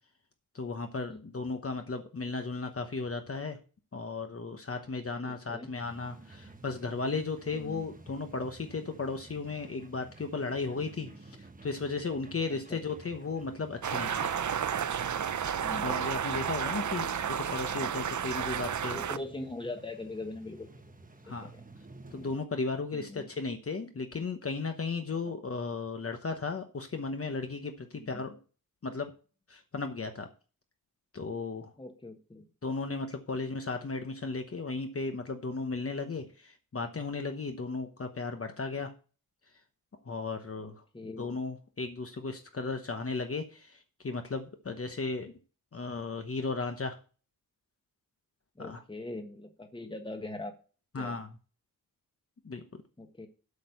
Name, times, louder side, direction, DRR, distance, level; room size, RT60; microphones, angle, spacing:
voice 1, 0.5-3.6 3.9-14.3 15.8-19.0 21.2-21.5 22.1-28.4 28.8-29.1 29.5-30.3 31.1-31.7 32.6-38.9 40.0-40.8 41.2-45.3 45.7-47.0 48.6-48.8 50.9-51.3 52.4-52.6, left 4 dB, 40° left, 6 dB, 1.0 m, -35 dB
voice 2, 5.2-5.7 7.5-7.8 12.7-12.8 15.5-16.0 18.9-20.9 21.3-21.6 22.9-23.3 25.3-25.4 28.0-28.2 31.8-32.5 40.6-41.3 48.5-50.5 50.9-51.2 53.0-53.3, left 2 dB, 15° left, 6 dB, 1.3 m, -42 dB
sound 1, 5.8-22.4, right 3 dB, 25° right, 1.0 m, -53 dB
sound 2, 13.8-19.2, right 8 dB, 55° right, 0.6 m, -32 dB
8.3 x 6.3 x 6.9 m, 0.36 s
wide cardioid pair, 180°, 36 cm